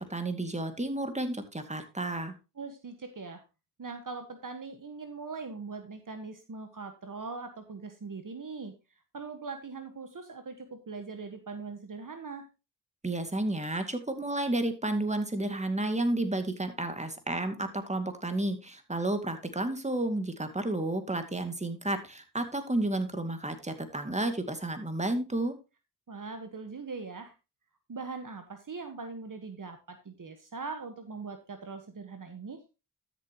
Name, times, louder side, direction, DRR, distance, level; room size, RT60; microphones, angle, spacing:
voice 1, 0.0-2.3 13.0-25.6, right 2 dB, 15° right, 7 dB, 2.3 m, -31 dB
voice 2, 2.6-3.4 3.8-8.7 9.1-12.5 26.1-27.3 27.9-32.6, right 4 dB, 50° right, 7 dB, 1.5 m, -41 dB
12.5 x 7.2 x 3.0 m, 0.28 s
cardioid pair, 45°, 40 cm